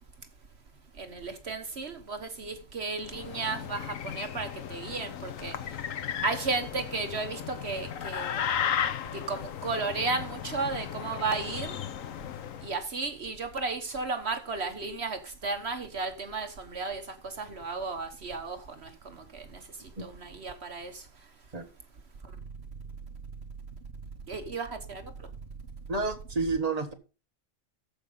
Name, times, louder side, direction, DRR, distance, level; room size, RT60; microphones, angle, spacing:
voice 1, 1.0-5.5 6.2-8.4 9.1-11.7 12.6-18.9 19.3-19.4 20.0-20.9 24.3-25.0, right 4 dB, 55° right, 1.4 m, -34 dB
sound 1, 3.0-12.8, left 8 dB, 75° left, 1.2 m, -35 dB
voice 2, 25.9-26.9, right 3 dB, 30° right, 1.5 m, -30 dB
14.0 x 5.2 x 5.4 m
omnidirectional pair, 1.4 m